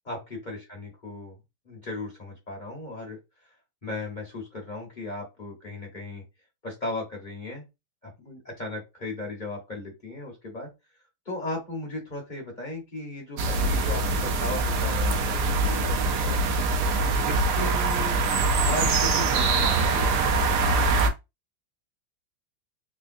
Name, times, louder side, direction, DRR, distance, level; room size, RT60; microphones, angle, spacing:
voice 1, 0.0-1.4 1.6-3.2 3.4-3.5 3.8-6.2 6.6-7.6 8.0-10.7 11.2-16.4 17.2-18.2 18.5-20.9, left 2 dB, 30° left, -1 dB, 0.9 m, -36 dB
sound 1, 13.4-21.1, right 3 dB, 65° right, 1.1 m, -23 dB
3.7 x 3.2 x 2.6 m, 0.23 s
omnidirectional pair, 2.2 m